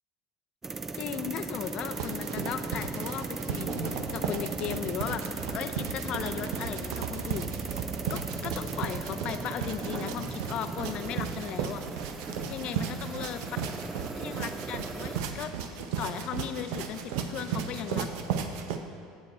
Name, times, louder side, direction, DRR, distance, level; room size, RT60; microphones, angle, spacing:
sound 1, 0.6-15.2, right 3 dB, 15° right, 0.3 m, -37 dB
voice 1, 0.9-7.6 8.1-11.8 12.5-13.4 14.1-18.1, left 9 dB, 45° left, 9 dB, 0.5 m, -37 dB
sound 2, 1.6-18.8, right 7 dB, 80° right, 0.6 m, -36 dB
sound 3, 3.7-4.2 9.8-10.3 12.3-12.6 12.9-13.2, right 2 dB, 45° right, 1.4 m, -38 dB
8.0 x 7.5 x 4.2 m, 2.2 s
supercardioid pair, 135°, 2 cm